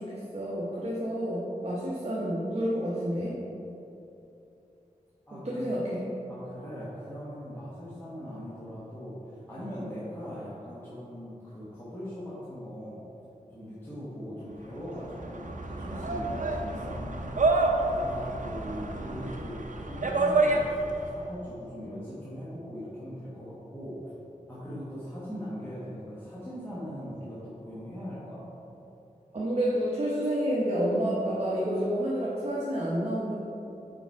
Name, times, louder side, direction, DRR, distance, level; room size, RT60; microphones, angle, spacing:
voice 1, 0.0-3.4 5.3-6.1 29.3-33.3, equal, 45° right, -6 dB, 0.9 m, -29 dB
voice 2, 5.3-5.7 6.3-13.0 13.5-24.1 24.5-28.5, equal, 15° left, -11 dB, 1.3 m, -40 dB
sound 1, 14.7-21.1, right 2 dB, 65° right, 0.5 m, -28 dB
5.1 x 4.9 x 4.6 m, 2.9 s
wide cardioid pair, 70°, 14 cm